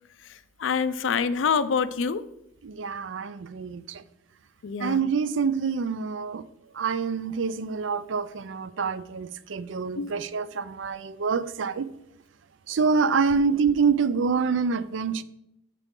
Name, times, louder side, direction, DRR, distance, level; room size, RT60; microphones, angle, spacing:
voice 1, 0.2-2.2 4.6-5.0 9.9-10.1, left 6 dB, 85° left, 0.5 m, -26 dB
voice 2, 2.6-4.0 4.8-6.5 6.7-11.9 12.7-15.2, right 5 dB, 75° right, 0.5 m, -26 dB
13.0 x 4.8 x 3.8 m
head